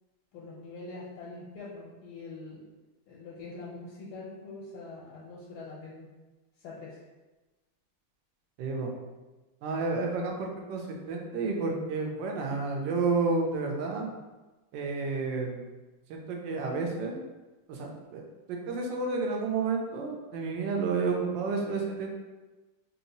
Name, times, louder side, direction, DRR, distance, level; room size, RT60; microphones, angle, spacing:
voice 1, 0.3-2.6 3.1-6.1 6.6-7.0, left 3 dB, 85° left, -6 dB, 1.6 m, -44 dB
voice 2, 8.6-8.9 9.6-14.1 14.7-15.7 16.1-17.1 17.7-18.2 18.5-22.1, right 4 dB, 70° right, 1 dB, 1.2 m, -30 dB
3.4 x 2.9 x 2.7 m, 1.1 s
omnidirectional pair, 2.3 m